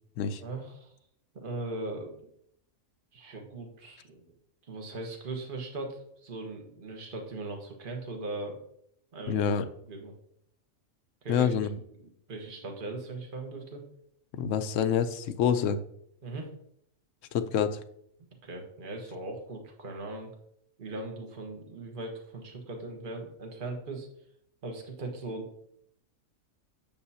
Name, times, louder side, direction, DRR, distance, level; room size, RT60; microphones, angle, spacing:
voice 1, 0.4-0.9 1.3-2.2 3.1-4.3 4.7-8.6 9.1-9.5 9.9-10.1 11.2-11.5 12.3-13.8 16.2-16.5 18.4-20.3 20.8-24.1 24.6-25.5, right 2 dB, 40° right, 2 dB, 1.4 m, -39 dB
voice 2, 9.3-9.7 11.3-11.7 14.3-15.8 17.3-17.8, left 8 dB, 70° left, 11 dB, 0.9 m, -27 dB
8.8 x 7.0 x 2.8 m, 0.71 s
omnidirectional pair, 1.4 m